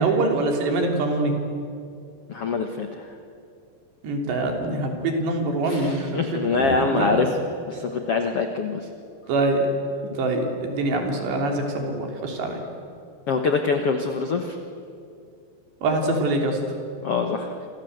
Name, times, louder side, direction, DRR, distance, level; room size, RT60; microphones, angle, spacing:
voice 1, 0.0-1.3 4.0-7.3 9.3-9.7 10.2-12.6 15.8-16.6, right 2 dB, 75° right, 2 dB, 5.4 m, -24 dB
voice 2, 2.3-3.1 5.6-7.4 7.7-8.9 13.3-14.6 17.0-17.6, left 4 dB, 85° left, 5 dB, 1.3 m, -24 dB
28.0 x 26.0 x 8.1 m, 2.4 s
omnidirectional pair, 5.1 m